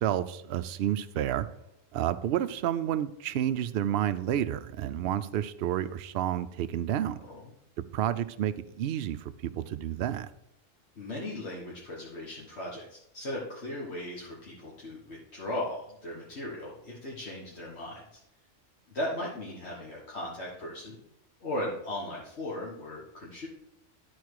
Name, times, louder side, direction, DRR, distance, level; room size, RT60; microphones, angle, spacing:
voice 1, 0.0-1.5 1.9-7.2 7.9-10.3, right 11 dB, 65° right, 11 dB, 0.6 m, -30 dB
voice 2, 11.0-18.2 18.9-21.0 21.4-23.5, left 1 dB, 55° left, -4 dB, 1.6 m, -37 dB
12.5 x 4.3 x 4.7 m, 0.81 s
omnidirectional pair, 1.3 m